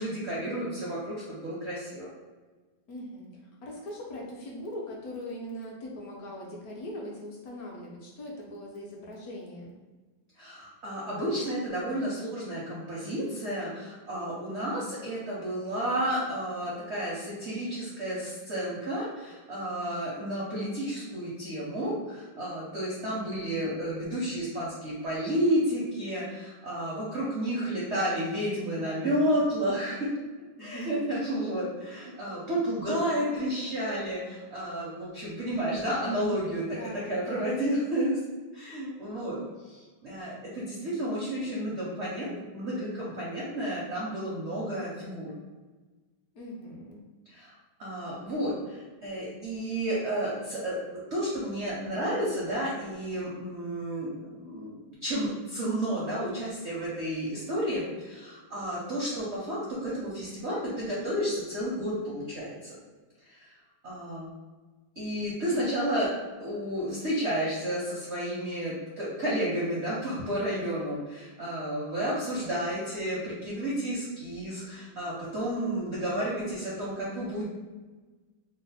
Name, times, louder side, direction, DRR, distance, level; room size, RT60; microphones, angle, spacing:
voice 1, 0.0-2.1 10.4-30.1 30.6-38.2 38.5-45.3 47.3-47.5 47.8-62.8 63.2-63.5 63.8-64.3 65.0-66.1 66.4-77.4, right 1 dB, 70° right, -7 dB, 0.6 m, -31 dB
voice 2, 2.9-3.3 3.6-9.8 30.6-31.0 36.6-37.8 46.3-47.0 65.5-65.6, left 1 dB, 65° left, -2 dB, 0.9 m, -41 dB
3.2 x 2.1 x 4.0 m, 1.3 s
omnidirectional pair, 2.1 m